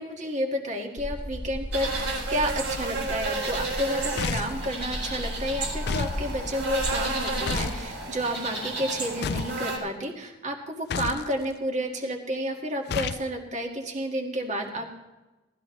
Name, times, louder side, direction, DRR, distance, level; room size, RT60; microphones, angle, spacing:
voice 1, 0.0-14.9, equal, 40° right, 1 dB, 1.9 m, -31 dB
sound 1, 1.0-7.9, equal, 15° left, 1.0 m, -36 dB
sound 2, 1.7-9.8, right 2 dB, 80° right, 3.9 m, -32 dB
sound 3, 4.2-4.7 5.9-6.2 7.5-7.8 9.2-9.6 10.9-11.3 12.9-13.3, left 5 dB, 60° left, 0.4 m, -30 dB
18.5 x 13.5 x 3.2 m, 1.1 s
head